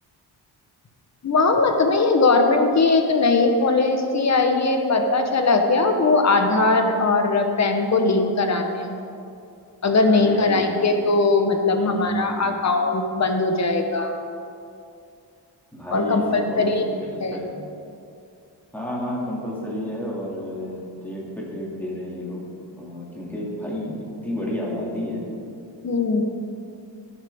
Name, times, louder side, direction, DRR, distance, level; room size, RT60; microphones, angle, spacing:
voice 1, 1.2-9.0 9.8-14.1 15.9-16.8 17.2-17.4 25.8-26.2, left 3 dB, 40° left, 4 dB, 1.0 m, -20 dB
voice 2, 10.1-10.7 11.7-12.6 15.7-17.7 18.7-22.5 22.7-25.3, equal, 5° left, -5 dB, 2.3 m, -31 dB
17.0 x 7.3 x 3.6 m, 2.6 s
wide cardioid pair, 150°, 42 cm